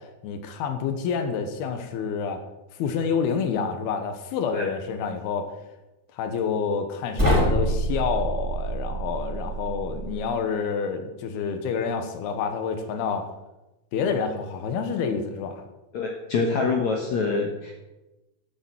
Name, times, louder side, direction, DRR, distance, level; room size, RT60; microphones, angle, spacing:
voice 1, 0.2-2.4 2.7-5.5 6.1-13.2 13.9-15.6, left 6 dB, 85° left, 6 dB, 3.1 m, -28 dB
sound 1, 7.2-10.2, right 1 dB, 5° right, 3.1 m, -26 dB
voice 2, 15.9-17.7, left 4 dB, 60° left, 1 dB, 2.1 m, -25 dB
13.0 x 6.8 x 7.7 m, 1.0 s
omnidirectional pair, 4.4 m